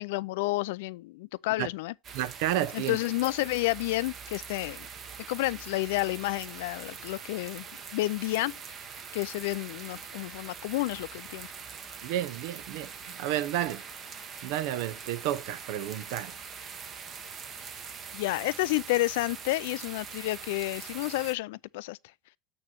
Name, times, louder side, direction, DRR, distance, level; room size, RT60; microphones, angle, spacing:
voice 1, 0.0-1.9 2.7-4.9 5.3-7.7 7.9-8.6 9.1-11.5 18.1-22.0, left 19 dB, 85° left, 0.3 m, -30 dB
sound 1, 2.0-21.4, right 6 dB, 30° right, 0.9 m, -43 dB
voice 2, 2.1-3.0 12.0-13.8 14.4-16.4, right 12 dB, 65° right, 0.6 m, -31 dB
8.7 x 3.1 x 5.8 m
cardioid pair, 160°, 0 cm